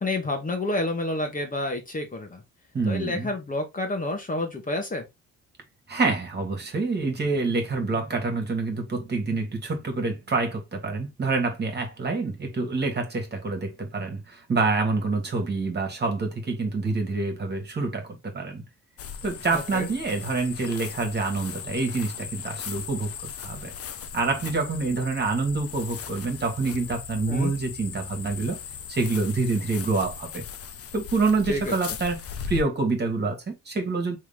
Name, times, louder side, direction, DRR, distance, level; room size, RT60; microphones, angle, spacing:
voice 1, 0.0-2.4 2.9-5.0 19.5-19.9 27.3-27.5 31.5-31.7, left 2 dB, 25° left, 1.2 m, -29 dB
voice 2, 2.7-3.3 5.9-18.6 19.2-23.1 23.4-23.7 24.1-28.6 28.9-30.4 30.9-32.2 32.5-34.2, right 3 dB, 35° right, 1.7 m, -27 dB
sound 1, 19.0-32.6, left 7 dB, 50° left, 0.7 m, -38 dB
3.7 x 3.3 x 3.5 m
cardioid pair, 90°, 30 cm